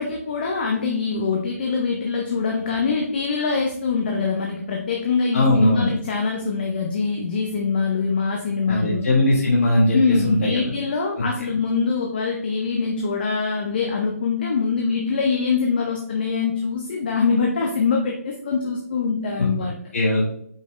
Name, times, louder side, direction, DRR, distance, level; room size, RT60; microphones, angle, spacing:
voice 1, 0.0-9.0 9.9-19.8, left 5 dB, 35° left, 1 dB, 0.5 m, -23 dB
voice 2, 5.3-5.9 8.7-10.7 11.2-11.3 19.9-20.3, left 1 dB, 55° left, -4 dB, 1.1 m, -19 dB
5.2 x 3.3 x 2.5 m, 0.66 s
hypercardioid pair, 165°, 9 cm